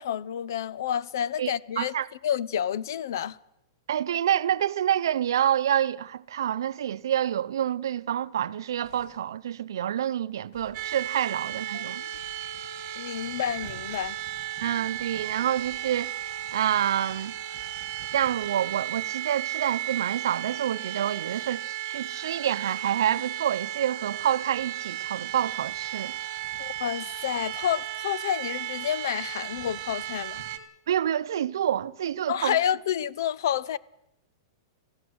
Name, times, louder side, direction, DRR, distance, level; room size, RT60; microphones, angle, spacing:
voice 1, 0.0-1.9 2.2-3.4 11.7-11.8 13.0-14.2 26.6-30.4 32.3-33.8, left 10 dB, 60° left, 0.7 m, -29 dB
voice 2, 1.4-2.1 3.9-12.0 14.6-16.1 16.5-17.3 18.1-26.1 30.9-32.6, right 10 dB, 80° right, 0.7 m, -27 dB
sound 1, 8.8-9.3 10.5-10.9 12.1-12.5 13.9-14.3 15.6-15.9 17.5-17.9, left 2 dB, 35° left, 5.4 m, -55 dB
sound 2, 10.7-30.6, right 12 dB, 30° right, 1.7 m, -35 dB
22.0 x 15.0 x 7.9 m
supercardioid pair, 180°, 2 cm